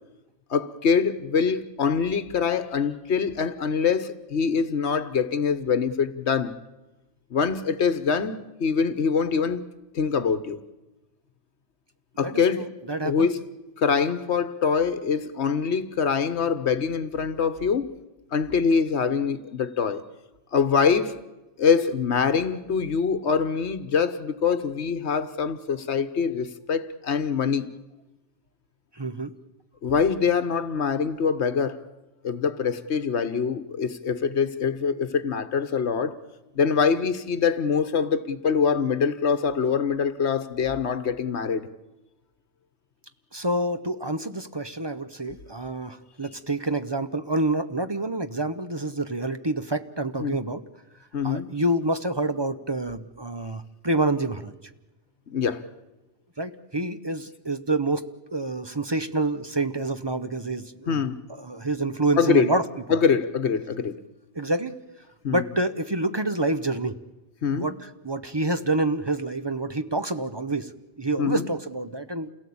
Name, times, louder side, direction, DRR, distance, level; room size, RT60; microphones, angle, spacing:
voice 1, 0.5-6.5 7.3-9.6 9.9-10.6 12.2-12.7 13.0-13.4 13.8-17.9 18.3-20.0 20.5-21.1 21.6-27.7 29.8-31.8 32.2-36.2 36.5-41.7 50.2-50.4 51.1-51.5 55.3-55.6 60.9-61.2 62.2-62.5 62.9-64.0 65.2-65.4 67.4-67.7 71.2-71.5, left 6 dB, 70° left, 1.3 m, -24 dB
voice 2, 12.2-13.3 29.0-29.3 43.3-50.6 51.2-54.6 56.4-61.0 61.4-62.7 64.3-64.8 65.3-67.0 67.5-70.7 71.0-72.3, right 2 dB, 25° right, 0.7 m, -27 dB
28.0 x 17.5 x 8.6 m
omnidirectional pair, 1.2 m